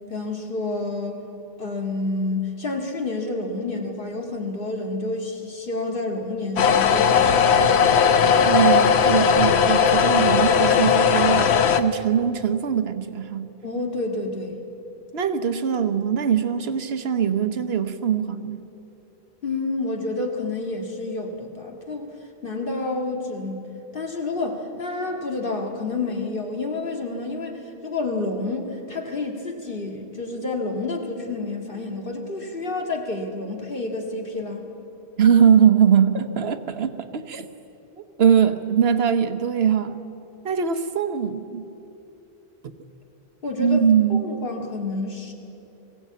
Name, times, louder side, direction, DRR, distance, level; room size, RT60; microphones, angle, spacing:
voice 1, 0.1-1.2 1.6-7.7 13.6-14.6 19.4-22.1 22.4-23.6 23.9-34.7 43.4-43.8 44.1-45.3, left 3 dB, 55° left, 2 dB, 2.2 m, -29 dB
sound 1, 6.6-11.8, left 7 dB, 85° left, 1.1 m, -18 dB
voice 2, 8.4-13.5 15.1-18.6 35.2-37.5 38.2-40.0 40.4-41.7 43.6-44.4, right 8 dB, 70° right, 9 dB, 1.2 m, -21 dB
21.0 x 16.5 x 8.5 m, 2.9 s
omnidirectional pair, 1.1 m